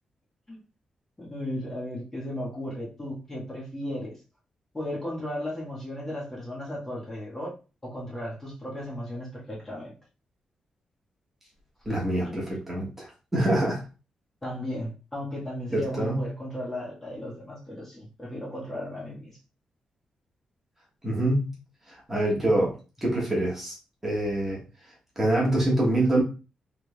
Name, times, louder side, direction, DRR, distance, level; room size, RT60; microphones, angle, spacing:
voice 1, 1.2-4.2 4.7-7.5 7.8-9.9 12.2-12.4 14.4-19.4, left 1 dB, 20° left, -4 dB, 1.3 m, -35 dB
voice 2, 11.8-13.8 15.7-16.3 21.0-21.6 22.1-22.8 23.0-23.7 24.0-24.6 25.2-26.2, right 1 dB, 15° right, -4 dB, 1.3 m, -25 dB
3.5 x 3.2 x 2.2 m, 0.32 s
wide cardioid pair, 135°, 2 cm